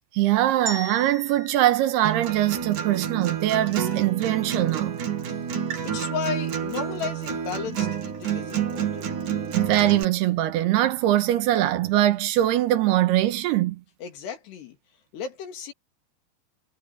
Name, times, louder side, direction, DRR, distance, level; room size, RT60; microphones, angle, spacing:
voice 1, 0.1-5.0 9.5-13.8, right 14 dB, 80° right, 2.9 m, -22 dB
sound 1, 0.7-2.9, right 3 dB, 35° right, 3.0 m, -38 dB
Acoustic guitar, 2.0-10.0, right 9 dB, 50° right, 3.9 m, -29 dB
voice 2, 5.8-9.1 14.0-14.8 15.1-15.7, left 7 dB, 75° left, 4.8 m, -34 dB
omnidirectional pair, 4.9 m